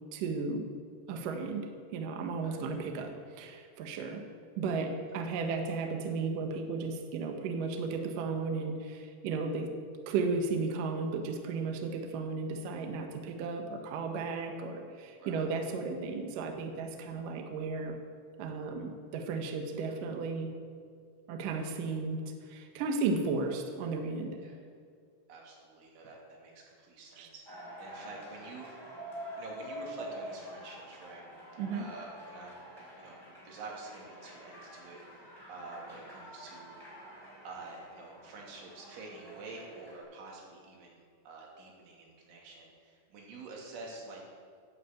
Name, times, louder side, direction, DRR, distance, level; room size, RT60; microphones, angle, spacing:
voice 1, 0.1-0.7 1.1-4.2 4.6-9.7 10.1-17.9 18.4-20.5 21.3-22.2 22.5-24.4 27.2-27.3 31.6-31.9, right 4 dB, 90° right, 4 dB, 1.8 m, -34 dB
voice 2, 15.2-15.5 24.4-24.6 25.3-27.4 27.8-28.8 29.4-31.3 31.7-32.5 33.0-36.9 37.4-44.3, right 3 dB, 70° right, -2 dB, 4.7 m, -48 dB
sound 1, 27.5-40.0, equal, 5° right, 3.4 m, -47 dB
11.0 x 9.5 x 8.0 m, 2.2 s
omnidirectional pair, 5.9 m